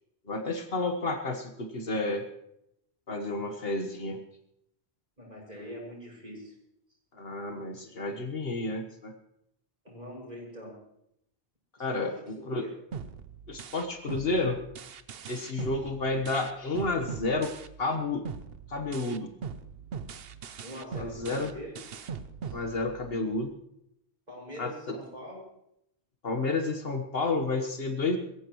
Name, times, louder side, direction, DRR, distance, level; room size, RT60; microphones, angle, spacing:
voice 1, 0.3-2.3 3.1-4.2 7.1-9.1 11.8-12.7 13.5-14.6 15.3-17.5 17.8-18.3 18.7-19.3 21.0-21.5 22.5-23.5 24.6-25.0 26.2-28.2, left 2 dB, 60° left, 5 dB, 1.5 m, -31 dB
voice 2, 5.2-6.5 9.8-10.8 11.8-12.7 20.6-21.8 22.5-22.6 24.3-25.4, equal, 40° right, -3 dB, 6.5 m, -43 dB
sound 1, 12.9-17.9 18.2-23.3, right 6 dB, 65° right, 0.9 m, -41 dB
23.0 x 15.0 x 3.1 m, 0.79 s
omnidirectional pair, 1.1 m